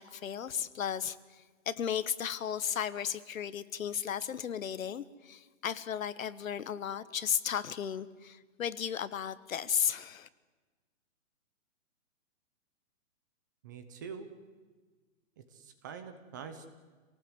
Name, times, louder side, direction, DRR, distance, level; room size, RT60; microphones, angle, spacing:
voice 1, 0.0-10.3, left 8 dB, 75° left, 16 dB, 1.3 m, -35 dB
voice 2, 13.6-14.3 15.5-16.7, right 6 dB, 15° right, 9 dB, 0.7 m, -45 dB
27.5 x 18.5 x 8.0 m, 1.4 s
hypercardioid pair, 175°, 41 cm